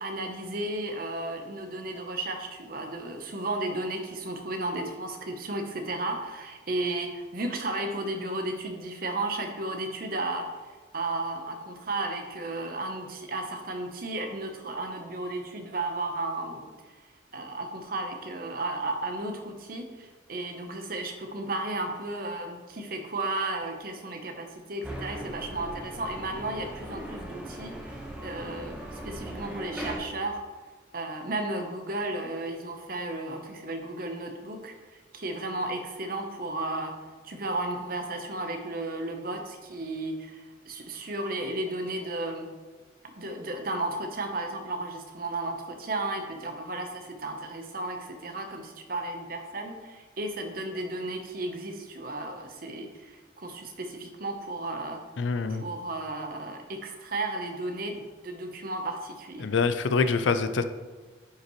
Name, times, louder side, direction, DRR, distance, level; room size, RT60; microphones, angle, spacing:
voice 1, 0.0-10.5 10.9-16.7 17.3-30.4 30.9-36.9 37.2-42.5 43.2-55.0 55.5-59.5, right 2 dB, 50° right, 5 dB, 0.8 m, -34 dB
sound 1, 24.8-30.0, right 1 dB, 5° right, 1.0 m, -39 dB
voice 2, 55.2-55.6 59.4-60.6, left 4 dB, 75° left, 10 dB, 0.5 m, -25 dB
9.9 x 5.5 x 3.0 m, 1.4 s
head